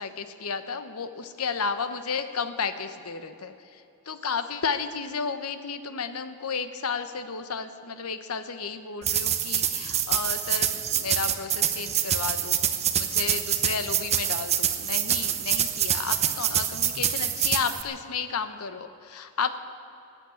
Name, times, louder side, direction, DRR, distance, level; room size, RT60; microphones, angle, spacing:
voice 1, 0.0-3.5 4.1-12.6 12.9-19.6, left 5 dB, 80° left, 10 dB, 1.0 m, -32 dB
sound 1, 9.0-17.8, right 9 dB, 30° right, 0.7 m, -26 dB
19.0 x 8.2 x 8.4 m, 2.7 s
head